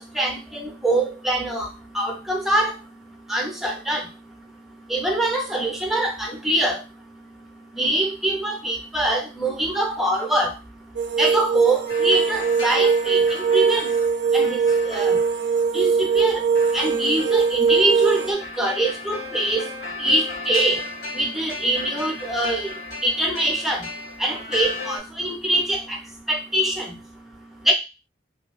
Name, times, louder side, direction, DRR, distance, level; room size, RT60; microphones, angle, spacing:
voice 1, 0.0-1.7 1.9-2.7 3.3-4.1 4.9-6.8 7.8-10.5 11.2-13.9 14.3-14.6 14.8-15.2 15.7-16.4 16.7-19.7 20.0-20.8 21.2-22.7 23.0-23.9 24.2-26.0 26.3-26.9 27.7-27.8, right 1 dB, ahead, 0 dB, 0.5 m, -23 dB
sound 1, 11.0-18.3, right 5 dB, 75° right, 0.4 m, -21 dB
sound 2, 11.9-25.0, left 2 dB, 65° left, 0.9 m, -36 dB
2.2 x 2.1 x 3.1 m, 0.27 s
head